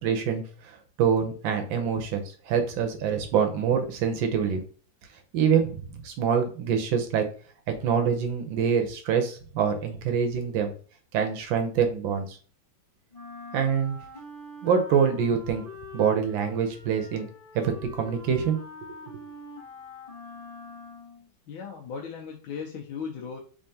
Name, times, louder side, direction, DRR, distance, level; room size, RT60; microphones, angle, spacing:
voice 1, 0.0-4.6 5.3-7.2 7.7-10.7 11.1-12.4 13.5-14.0 14.6-15.6 15.9-17.3 17.5-19.0, right 7 dB, 75° right, 5 dB, 1.5 m, -25 dB
Wind instrument woodwind instrument, 13.1-21.3, left 2 dB, 30° left, 0.7 m, -44 dB
voice 2, 21.5-23.4, left 6 dB, 85° left, 0 dB, 1.5 m, -37 dB
3.5 x 3.5 x 2.7 m, 0.41 s
omnidirectional pair, 2.2 m